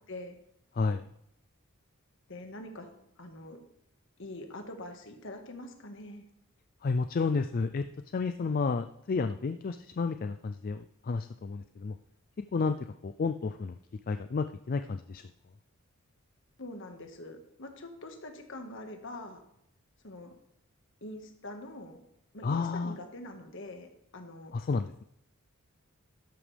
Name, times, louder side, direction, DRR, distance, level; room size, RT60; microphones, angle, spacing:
voice 1, 2.3-2.9 3.2-3.6 4.2-6.2 16.6-19.4 20.0-20.3 21.0-22.0 22.3-24.5, left 1 dB, 60° left, 5 dB, 1.6 m, -44 dB
voice 2, 6.8-7.8 8.1-11.9 12.5-12.8 13.0-13.7 14.1-15.2 22.4-23.0 24.5-25.0, left 4 dB, 40° left, 9 dB, 0.4 m, -31 dB
12.5 x 11.0 x 3.4 m, 0.75 s
head